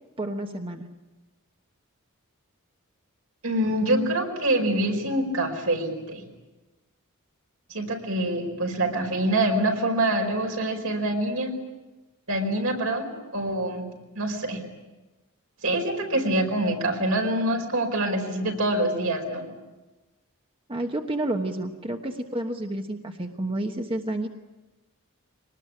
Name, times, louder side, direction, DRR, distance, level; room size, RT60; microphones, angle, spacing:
voice 1, 0.2-0.9 20.7-24.3, right 1 dB, 25° right, 4 dB, 1.2 m, -30 dB
voice 2, 3.4-6.2 7.7-11.5 12.3-13.9 14.2-14.6 15.6-19.5, right 1 dB, 75° right, 2 dB, 5.0 m, -25 dB
24.0 x 19.5 x 10.0 m, 1.1 s
head